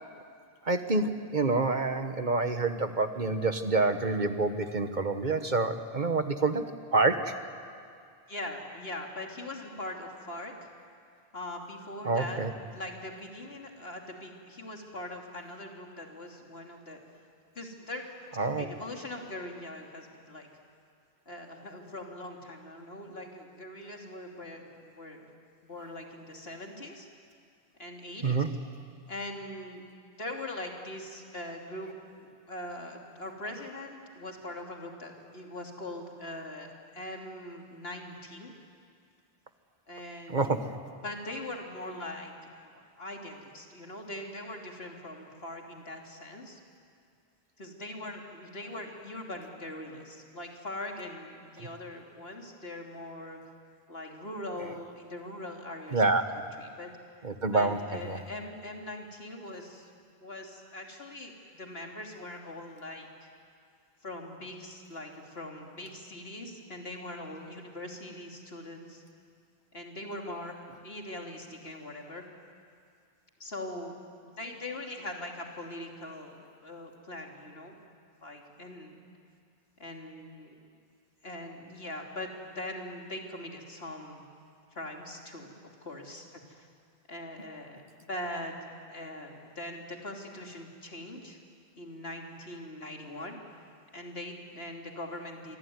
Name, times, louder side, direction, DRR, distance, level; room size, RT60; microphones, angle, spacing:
voice 1, 0.6-7.3 12.0-12.5 18.4-18.7 28.2-28.5 40.3-40.8 55.9-56.2 57.2-57.8 58.1-58.2, right 3 dB, 45° right, 8 dB, 1.4 m, -27 dB
voice 2, 8.3-10.7 11.3-17.0 17.5-18.0 18.6-20.5 21.2-25.3 25.6-27.1 27.8-28.4 29.1-31.9 32.2-38.5 39.9-40.5 40.9-42.3 42.6-46.6 47.6-53.4 53.9-56.0 56.3-56.9 57.5-59.9 60.2-63.3 64.0-69.0 69.7-70.5 70.8-72.2 73.4-74.0 74.2-77.7 78.2-79.0 79.8-80.5 81.2-84.2 84.7-86.7 87.1-88.5 88.9-91.4 91.8-93.4 93.9-95.6, left 1 dB, 70° left, 1 dB, 3.4 m, -41 dB
26.5 x 23.5 x 9.5 m, 2.3 s
omnidirectional pair, 1.1 m